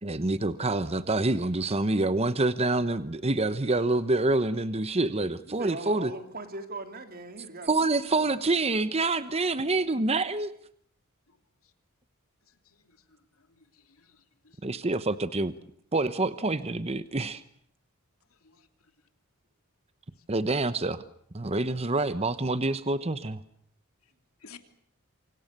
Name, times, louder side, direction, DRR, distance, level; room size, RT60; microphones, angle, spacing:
voice 1, 0.0-6.1 7.7-10.5 14.6-15.5 15.9-17.4 20.3-21.0 21.3-23.4, right 2 dB, 30° right, 13 dB, 1.0 m, -27 dB
voice 2, 5.4-8.4, right 2 dB, 45° right, 7 dB, 3.3 m, -40 dB
voice 3, 13.6-14.6 18.4-18.7 24.4-24.6, left 6 dB, 75° left, 8 dB, 2.9 m, -53 dB
28.0 x 25.5 x 6.7 m, 0.65 s
head